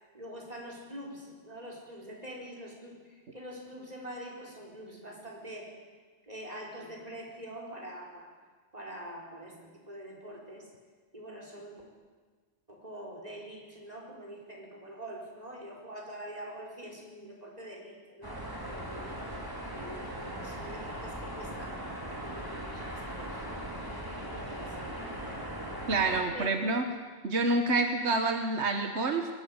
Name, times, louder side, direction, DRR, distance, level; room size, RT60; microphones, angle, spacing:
voice 1, 0.1-5.7 6.2-8.3 8.7-10.7 11.1-11.8 12.7-19.4 19.7-21.8 22.1-23.5 24.0-25.6 26.3-26.5, equal, 35° right, -1 dB, 4.7 m, -45 dB
sound 1, 18.2-26.2, right 1 dB, 20° right, 3.2 m, -39 dB
voice 2, 25.9-26.8 27.2-29.3, right 2 dB, 90° right, 5 dB, 1.6 m, -27 dB
21.0 x 13.0 x 9.7 m, 1.5 s
omnidirectional pair, 1.1 m